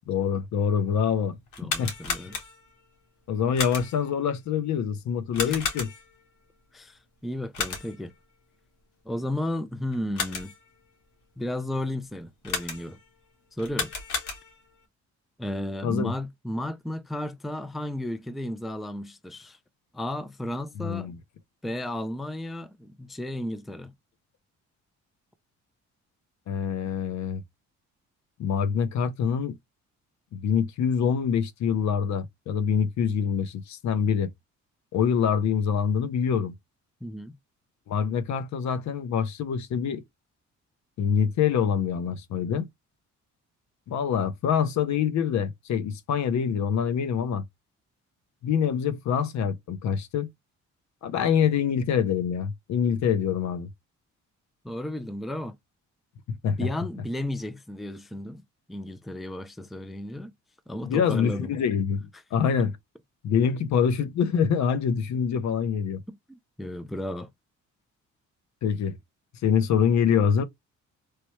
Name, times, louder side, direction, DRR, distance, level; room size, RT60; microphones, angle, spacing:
voice 1, 0.1-1.4 1.8-1.9 3.3-5.9 15.8-16.1 20.8-21.2 26.5-27.4 28.4-29.5 30.3-34.3 34.9-36.5 37.9-40.0 41.0-42.7 43.9-47.4 48.4-50.3 51.0-53.7 56.3-56.6 60.8-62.8 63.2-66.0 68.6-69.0 69.4-70.4, left 7 dB, 70° left, 0.6 m, -25 dB
sound 1, 1.5-2.8 3.5-4.1 5.3-6.2 7.5-8.1 9.9-10.7 12.4-13.1 13.6-14.7, left 5 dB, 90° left, 1.3 m, -33 dB
voice 2, 1.6-2.4 5.4-5.7 6.7-8.1 9.1-10.5 11.4-13.0 13.5-13.9 15.4-19.6 19.9-21.1 21.6-23.9 37.0-37.4 54.6-55.6 56.6-58.4 58.7-60.3 60.7-61.5 66.1-67.3, left 1 dB, ahead, 0.4 m, -33 dB
3.1 x 2.2 x 3.0 m
cardioid pair, 90°, 30 cm